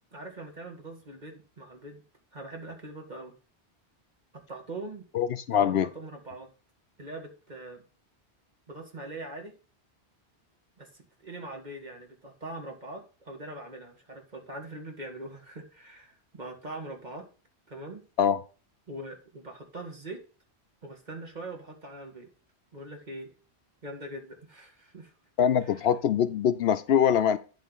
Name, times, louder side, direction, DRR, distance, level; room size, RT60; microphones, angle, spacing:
voice 1, 0.0-2.0 2.3-3.3 4.5-5.1 5.5-6.5 7.0-7.8 8.7-9.5 10.8-17.3 17.7-18.0 18.9-20.2 20.8-22.3 22.7-23.3 23.8-25.1 25.6-25.9, right 2 dB, 40° right, 2 dB, 2.0 m, -42 dB
voice 2, 5.1-5.9 18.2-18.4 25.4-27.4, left 8 dB, 70° left, 12 dB, 0.8 m, -23 dB
10.0 x 3.8 x 5.5 m, 0.35 s
omnidirectional pair, 1.1 m